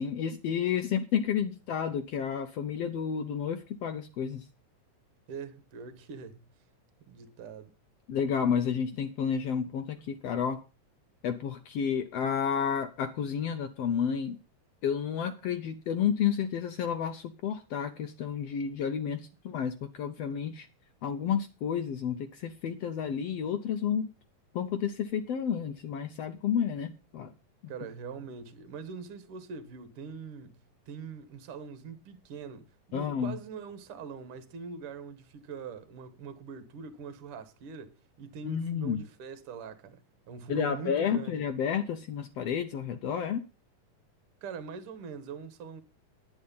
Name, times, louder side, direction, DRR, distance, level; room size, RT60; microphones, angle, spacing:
voice 1, 0.0-4.5 8.1-10.6 11.2-14.4 14.8-20.7 21.0-24.1 24.5-27.3 27.6-27.7 32.9-33.4 38.4-39.0 40.5-43.4, left 7 dB, 80° left, 1.4 m, -31 dB
voice 2, 5.3-6.5 7.0-7.7 27.7-40.0 40.3-41.4 44.4-45.8, right 6 dB, 55° right, 1.8 m, -43 dB
10.5 x 9.6 x 5.4 m
omnidirectional pair, 3.7 m